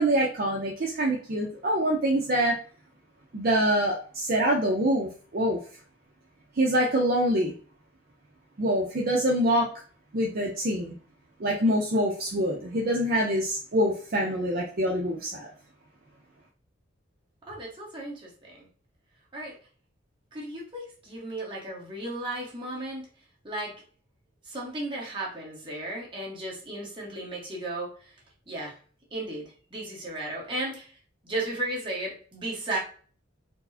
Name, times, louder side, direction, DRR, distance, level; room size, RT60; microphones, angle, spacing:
voice 1, 0.0-2.6 3.3-5.6 6.6-7.5 8.6-9.7 10.1-10.9 11.4-15.5, right 1 dB, 50° right, -1 dB, 0.5 m, -25 dB
voice 2, 17.5-18.7 19.3-19.6 20.3-23.1 23.4-23.7 24.5-28.1 28.5-28.7 29.1-30.9 31.2-32.8, right 1 dB, 25° right, -4 dB, 1.2 m, -35 dB
4.4 x 2.1 x 2.6 m, 0.42 s
head